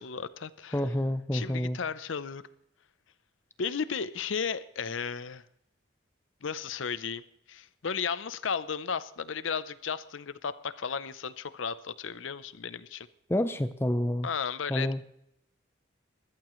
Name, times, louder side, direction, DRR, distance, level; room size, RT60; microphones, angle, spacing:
voice 1, 0.0-0.8 1.3-2.4 3.6-5.4 6.4-7.2 7.5-13.1 14.2-14.9, left 6 dB, 85° left, 15 dB, 0.7 m, -34 dB
voice 2, 0.7-1.8 13.3-14.3 14.7-15.0, left 1 dB, 10° left, 11 dB, 0.5 m, -28 dB
21.0 x 14.0 x 3.1 m, 0.78 s
head